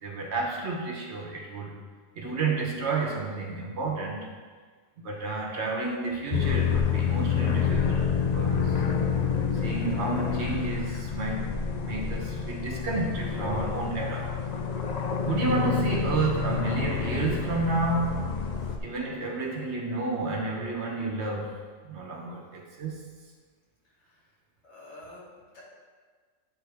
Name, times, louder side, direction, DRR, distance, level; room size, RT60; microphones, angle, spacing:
voice 1, 0.0-1.7 2.1-4.3 5.0-8.8 9.5-14.3 15.2-18.2 18.8-21.6 21.8-23.0, right 3 dB, 60° right, -1 dB, 1.2 m, -31 dB
sound 1, 6.3-18.8, left 7 dB, 85° left, 0.3 m, -28 dB
voice 2, 24.6-25.6, left 1 dB, 60° left, -6 dB, 1.9 m, -48 dB
9.4 x 4.2 x 3.4 m, 1.5 s
omnidirectional pair, 1.4 m